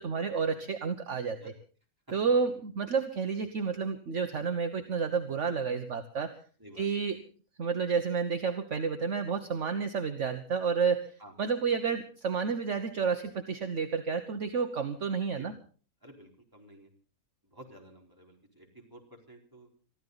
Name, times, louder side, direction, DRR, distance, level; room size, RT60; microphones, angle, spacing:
voice 1, 0.0-1.4 2.1-6.3 6.8-7.2 7.6-11.1 11.4-15.5, right 5 dB, 55° right, 6 dB, 1.4 m, -30 dB
voice 2, 16.0-16.9 17.4-19.7, right 1 dB, 15° right, 0 dB, 4.1 m, -52 dB
24.0 x 14.0 x 4.0 m, 0.40 s
omnidirectional pair, 1.6 m